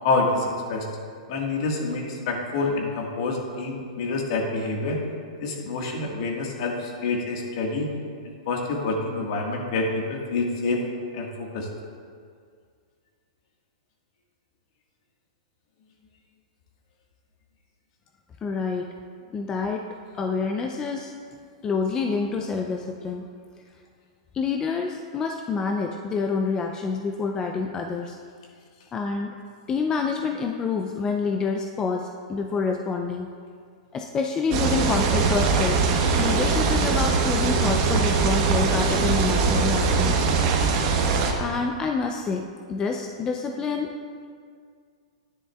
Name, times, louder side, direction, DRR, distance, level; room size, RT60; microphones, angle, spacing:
voice 1, 0.0-0.9 1.3-5.0 5.4-7.9 8.5-10.8 11.1-11.7, left 3 dB, 55° left, 0 dB, 1.6 m, -27 dB
voice 2, 18.4-18.9 19.3-19.9 20.2-21.2 21.6-23.3 24.3-28.2 28.9-29.4 29.7-33.3 33.9-35.9 36.2-40.2 41.4-43.9, left 4 dB, 20° left, 3 dB, 0.4 m, -27 dB
sound 1, 34.5-41.3, right 4 dB, 45° right, 1.0 m, -22 dB
10.0 x 10.0 x 2.3 m, 2.1 s
hypercardioid pair, 145°, 4 cm